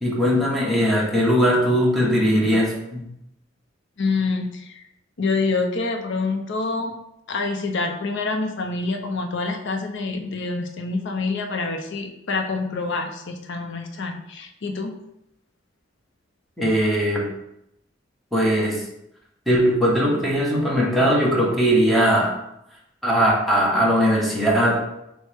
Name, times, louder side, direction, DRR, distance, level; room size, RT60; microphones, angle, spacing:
voice 1, 0.0-3.1 16.6-17.3 18.3-18.8 19.5-22.3 23.0-24.8, equal, ahead, -4 dB, 1.0 m, -19 dB
voice 2, 4.0-4.8 5.2-6.9 7.3-14.9, left 3 dB, 65° left, 5 dB, 0.6 m, -26 dB
6.3 x 2.1 x 3.3 m, 0.83 s
head